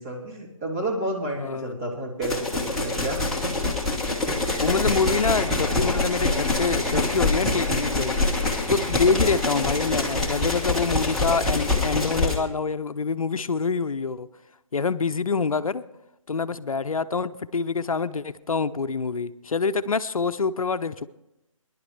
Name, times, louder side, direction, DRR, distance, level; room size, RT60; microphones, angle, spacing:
voice 1, 0.0-3.3 4.3-4.4, right 1 dB, 25° right, -4 dB, 3.0 m, -31 dB
voice 2, 1.4-1.9 4.6-8.2 8.7-14.3 14.7-15.8 16.3-21.1, left 4 dB, 80° left, 13 dB, 0.6 m, -26 dB
sound 1, 2.2-12.4, left 2 dB, ahead, 1.3 m, -25 dB
21.5 x 11.0 x 3.2 m, 0.89 s
figure-of-eight pair, 150°, 18 cm